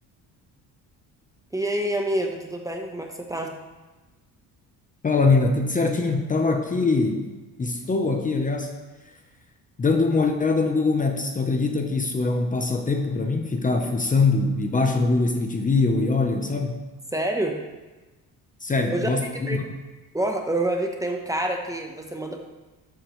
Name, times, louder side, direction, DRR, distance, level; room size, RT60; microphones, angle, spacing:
voice 1, 1.5-3.5 17.1-17.6 18.9-19.6 20.1-22.4, right 1 dB, 10° right, 2 dB, 0.9 m, -27 dB
voice 2, 5.0-7.3 7.6-8.7 9.8-16.8 18.6-19.6, left 3 dB, 20° left, 4 dB, 0.8 m, -23 dB
13.0 x 8.2 x 3.1 m, 1.2 s
cardioid pair, 135°, 36 cm